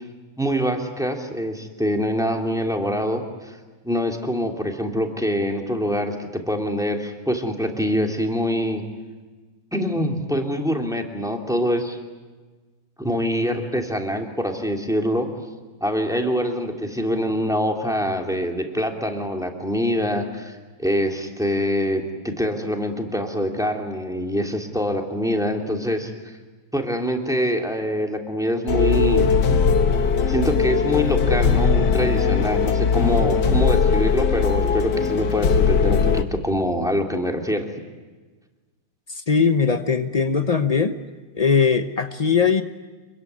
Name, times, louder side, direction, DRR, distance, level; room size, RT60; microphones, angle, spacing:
voice 1, 0.4-3.6 3.8-8.8 9.7-12.0 13.0-15.3 15.8-26.4 26.7-29.3 30.3-37.7, equal, ahead, 2 dB, 2.9 m, -24 dB
sound 1, 28.7-36.2, left 5 dB, 55° left, 1.8 m, -19 dB
voice 2, 39.1-41.0 41.3-42.6, left 5 dB, 80° left, 8 dB, 0.3 m, -20 dB
27.0 x 22.5 x 9.5 m, 1.3 s
omnidirectional pair, 2.3 m